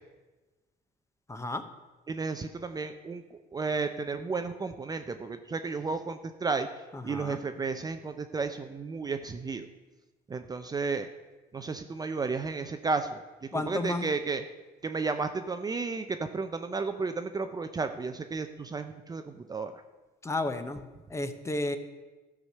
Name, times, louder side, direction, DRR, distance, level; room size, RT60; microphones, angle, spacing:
voice 1, 1.3-1.6 6.9-7.4 13.5-14.1 20.2-21.8, left 2 dB, 15° left, 9 dB, 0.8 m, -33 dB
voice 2, 2.1-3.2 3.5-6.7 7.0-9.7 10.3-11.1 11.5-13.2 13.5-14.4 14.8-19.8, right 4 dB, 25° right, 8 dB, 0.5 m, -33 dB
13.0 x 4.9 x 6.6 m, 1.2 s
cardioid pair, 110°, 17 cm